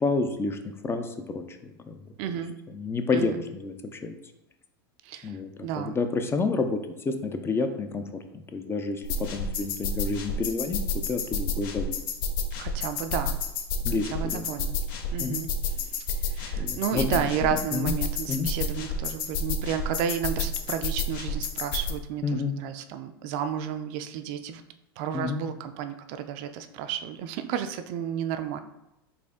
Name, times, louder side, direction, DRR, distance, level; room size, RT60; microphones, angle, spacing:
voice 1, 0.0-2.0 2.7-4.1 5.2-5.5 5.8-6.8 7.0-8.0 8.3-10.8 11.1-12.0 13.8-14.5 15.2-15.4 16.6-17.9 18.3-18.5 22.2-22.5 25.1-25.4, left 4 dB, 20° left, 7 dB, 0.4 m, -29 dB
voice 2, 2.2-2.5 3.1-3.4 5.0-6.0 12.6-13.4 14.1-14.8 15.1-15.5 16.1-24.6 25.0-28.6, right 8 dB, 55° right, 9 dB, 0.4 m, -32 dB
sound 1, 9.0-21.9, left 3 dB, 65° left, 0.6 m, -30 dB
4.2 x 2.6 x 3.6 m, 0.88 s
hypercardioid pair, 90°, 13 cm